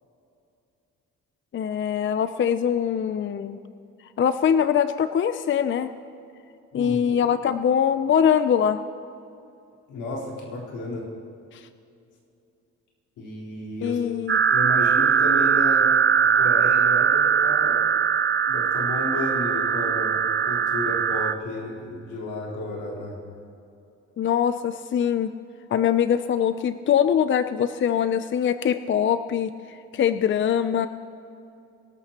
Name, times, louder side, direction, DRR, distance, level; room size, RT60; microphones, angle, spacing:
voice 1, 1.5-3.6 4.2-5.9 6.7-8.8 11.5-11.7 13.8-14.4 24.2-25.3 25.7-30.9, left 8 dB, 40° left, 11 dB, 0.5 m, -23 dB
voice 2, 6.7-7.2 9.9-11.0 13.2-14.0 14.5-15.9 16.1-17.8 18.5-23.2, left 2 dB, 90° left, -4 dB, 4.0 m, -32 dB
sound 1, 14.3-21.3, right 7 dB, 40° right, 0.7 m, -21 dB
23.5 x 12.5 x 2.9 m, 2.6 s
cardioid pair, 90°, 30 cm